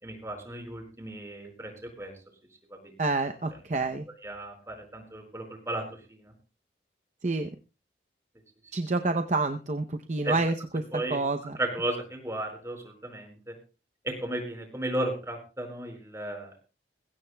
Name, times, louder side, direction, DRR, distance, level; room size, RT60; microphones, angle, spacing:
voice 1, 0.0-2.1 2.7-3.0 4.2-6.3 10.2-10.3 10.9-11.2 11.6-13.5 14.0-16.6, right 1 dB, 15° right, 3 dB, 4.8 m, -35 dB
voice 2, 3.0-4.1 7.2-7.5 8.7-11.6, right 3 dB, 40° right, 7 dB, 0.7 m, -28 dB
21.0 x 16.5 x 2.3 m, 0.33 s
head